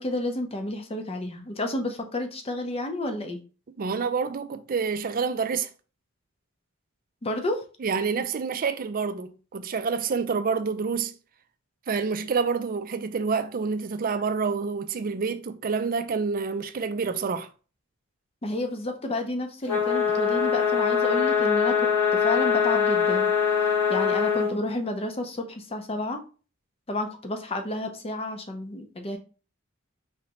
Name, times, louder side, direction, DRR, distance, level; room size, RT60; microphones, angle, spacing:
voice 1, 0.0-3.4 7.2-7.6 8.2-8.3 18.4-23.3 23.9-26.2 26.9-29.2, left 1 dB, 30° left, 0.7 m, -30 dB
voice 2, 3.8-5.7 7.8-11.1 11.9-17.5, right 5 dB, 45° right, 0.4 m, -28 dB
sound 1, 19.7-24.5, left 7 dB, 85° left, 2.4 m, -23 dB
4.9 x 3.2 x 3.0 m
head